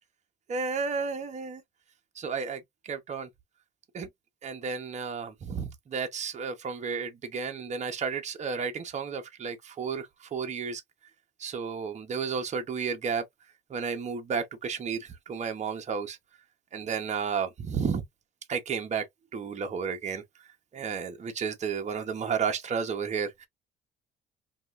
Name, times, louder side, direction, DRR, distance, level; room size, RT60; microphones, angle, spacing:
voice 1, 0.5-1.6 2.2-2.6 2.9-3.3 3.9-4.1 4.4-10.8 11.4-13.2 13.7-16.2 16.7-18.0 18.5-19.0 19.3-20.2 20.7-23.5, right 6 dB, 35° right, 1.0 m, -32 dB
5.3 x 2.5 x 2.5 m
cardioid pair, 130°, 19 cm